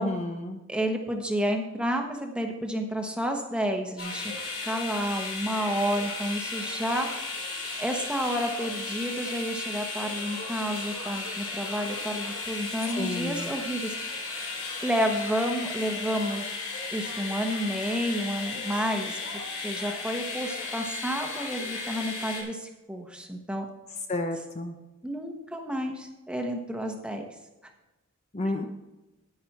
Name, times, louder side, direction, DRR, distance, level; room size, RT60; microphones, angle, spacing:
voice 1, 0.0-0.6 13.0-13.5 24.1-24.8 28.3-28.6, left 2 dB, 30° left, 4 dB, 0.8 m, -31 dB
voice 2, 0.7-14.5 14.8-16.5 16.9-19.2 19.6-23.7 25.0-27.2, equal, 5° right, 3 dB, 1.2 m, -30 dB
sound 1, 4.0-22.4, left 3 dB, 70° left, 4.1 m, -35 dB
10.5 x 10.5 x 4.2 m, 1.0 s
head